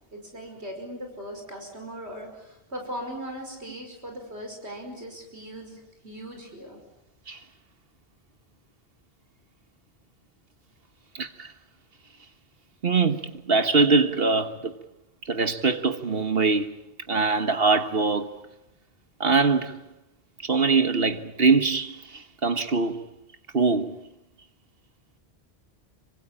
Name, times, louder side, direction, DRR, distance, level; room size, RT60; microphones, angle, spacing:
voice 1, 0.1-6.8, equal, 85° right, 5.6 m, -39 dB
voice 2, 11.1-11.5 12.8-14.7 15.2-16.8 17.1-18.4 19.2-19.8 20.4-23.0 23.5-24.0, right 4 dB, 65° right, 1.6 m, -23 dB
26.5 x 25.5 x 8.7 m
omnidirectional pair, 1.1 m